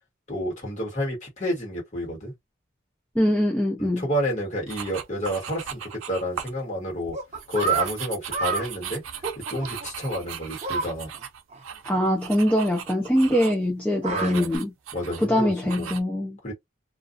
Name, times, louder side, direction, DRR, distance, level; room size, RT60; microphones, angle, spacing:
voice 1, 0.3-2.3 3.8-7.2 7.5-9.0 9.5-11.1 14.1-14.5 14.9-15.9 16.4-16.5, equal, 35° left, 1.5 m, -30 dB
voice 2, 3.2-4.0 11.9-14.7 15.2-16.4, equal, 5° left, 0.4 m, -23 dB
sound 1, 4.7-6.6 7.0-13.7 14.1-15.3 15.7-16.0, right 8 dB, 85° right, 0.5 m, -38 dB
sound 2, 7.1-7.9 8.3-8.7 9.2-9.9 10.6-10.9 11.1-11.2 11.5-11.6 11.9-12.0 13.8-14.6, right 5 dB, 35° right, 0.6 m, -28 dB
2.5 x 2.3 x 2.5 m
head